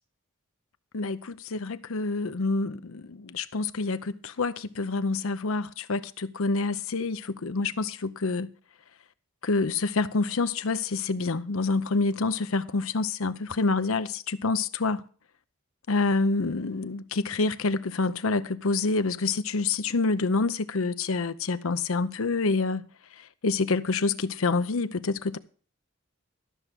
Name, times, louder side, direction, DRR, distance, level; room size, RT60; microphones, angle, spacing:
voice 1, 0.9-8.5 9.4-15.0 15.9-22.8 23.2-25.4, left 3 dB, 75° left, 0.7 m, -27 dB
13.0 x 6.0 x 6.7 m
head